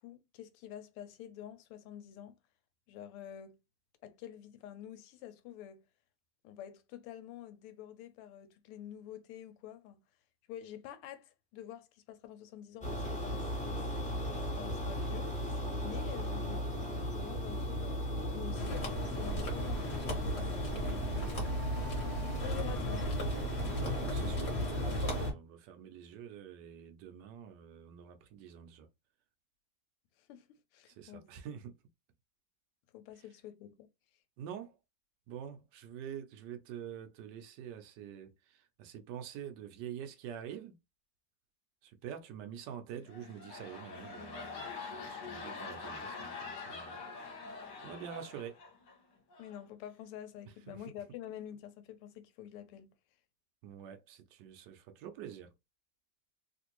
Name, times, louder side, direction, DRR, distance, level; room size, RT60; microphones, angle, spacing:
voice 1, 0.0-2.3 2.9-3.6 4.0-5.8 6.4-10.0 10.5-18.1 18.3-21.6 22.4-23.2 30.2-31.3 32.9-33.9 49.4-52.9, left 11 dB, 90° left, 1.5 m, -48 dB
sound 1, 12.8-25.3, equal, 5° left, 0.6 m, -36 dB
sound 2, 18.5-25.3, equal, 35° left, 1.2 m, -37 dB
voice 2, 23.7-28.9 30.9-31.7 33.2-33.3 34.4-34.8 35.3-40.8 41.8-47.0 47.8-48.6 50.7-50.9 53.6-55.5, right 9 dB, 75° right, 1.0 m, -46 dB
sound 3, 43.0-48.9 49.3-49.6, left 4 dB, 60° left, 1.4 m, -45 dB
3.4 x 2.5 x 2.9 m
omnidirectional pair, 2.4 m